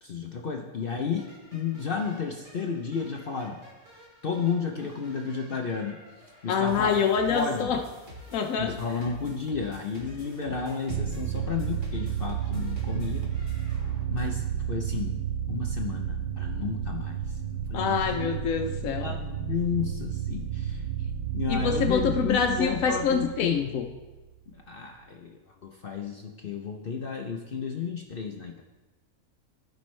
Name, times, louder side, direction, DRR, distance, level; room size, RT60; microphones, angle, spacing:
voice 1, 0.0-3.6 4.2-6.0 6.4-7.0 7.3-7.7 8.6-13.3 14.1-15.2 15.5-17.2 17.7-18.3 19.0-20.8 21.3-23.7 24.5-28.6, left 5 dB, 55° left, 2 dB, 0.7 m, -32 dB
sound 1, 1.2-14.3, equal, 35° right, 2.1 m, -48 dB
voice 2, 6.5-7.8 8.3-8.7 17.7-19.1 21.5-23.9, left 6 dB, 70° left, 3 dB, 1.0 m, -26 dB
sound 2, 10.9-24.3, right 9 dB, 70° right, 0.5 m, -32 dB
16.0 x 5.3 x 3.2 m, 1.2 s
omnidirectional pair, 1.6 m